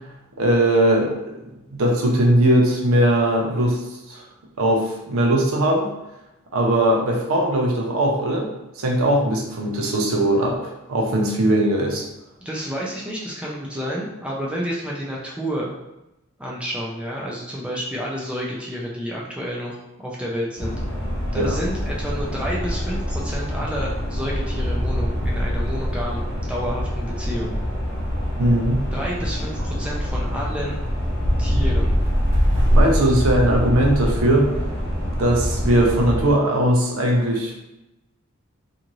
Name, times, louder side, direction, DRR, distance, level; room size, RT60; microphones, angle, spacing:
voice 1, 0.4-1.3 1.7-3.8 4.1-4.2 4.6-5.9 6.5-12.0 21.3-21.6 28.4-28.8 32.7-34.5 35.2-37.5, right 1 dB, 70° right, 0 dB, 0.5 m, -19 dB
voice 2, 12.4-15.8 16.4-20.8 21.3-27.6 28.9-30.8 31.4-31.9, equal, 5° right, -4 dB, 0.4 m, -30 dB
sound 1, 20.6-36.3, equal, 55° left, 0.6 m, -24 dB
2.6 x 2.5 x 2.9 m, 0.94 s
head